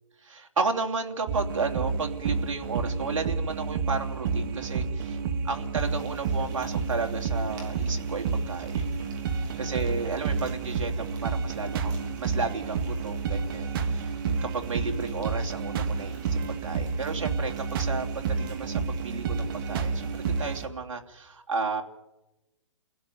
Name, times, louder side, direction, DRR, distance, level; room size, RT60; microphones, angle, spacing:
voice 1, 0.2-5.2 5.4-8.9 9.3-14.1 14.4-21.8, right 4 dB, 85° right, 4 dB, 3.0 m, -33 dB
sound 1, 1.3-20.7, right 5 dB, 45° right, 2.2 m, -30 dB
Frying (food), 5.7-20.6, right 3 dB, 25° right, 6.4 m, -53 dB
29.5 x 16.5 x 9.3 m, 1.0 s
hypercardioid pair, 145°, 16 cm